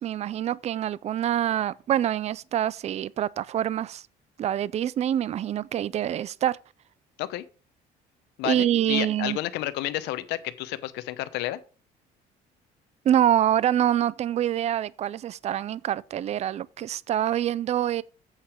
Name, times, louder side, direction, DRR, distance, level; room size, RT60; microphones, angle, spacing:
voice 1, 0.0-4.0 4.4-6.6 8.4-9.4 13.0-18.0, right 11 dB, 40° right, 0.4 m, -25 dB
voice 2, 8.4-11.6, left 15 dB, 90° left, 0.8 m, -31 dB
8.2 x 5.9 x 4.9 m
cardioid pair, 110°, 17 cm